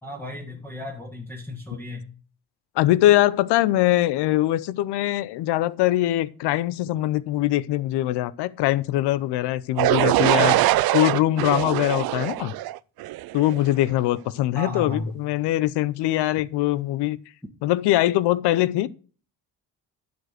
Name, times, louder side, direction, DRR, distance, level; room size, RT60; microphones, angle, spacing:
voice 1, 0.0-2.1 14.5-15.1, left 2 dB, 5° left, 1.8 m, -34 dB
voice 2, 2.8-10.6 10.9-12.5 13.3-17.2 17.6-18.9, left 15 dB, 85° left, 0.7 m, -22 dB
sound 1, 9.8-13.7, right 16 dB, 65° right, 0.5 m, -22 dB
11.0 x 5.2 x 6.4 m
cardioid pair, 85°, 40 cm